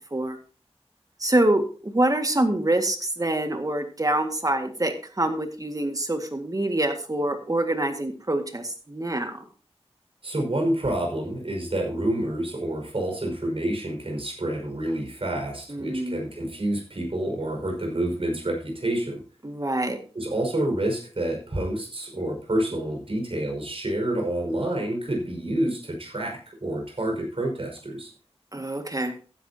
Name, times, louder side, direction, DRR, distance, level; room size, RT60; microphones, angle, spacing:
voice 1, 1.2-9.4 15.7-16.2 19.4-20.0 28.5-29.1, right 1 dB, 35° right, 6 dB, 1.9 m, -25 dB
voice 2, 10.2-19.2 20.1-28.1, right 1 dB, 60° right, 1 dB, 5.4 m, -28 dB
15.0 x 10.5 x 2.8 m, 0.38 s
wide cardioid pair, 60°, 11 cm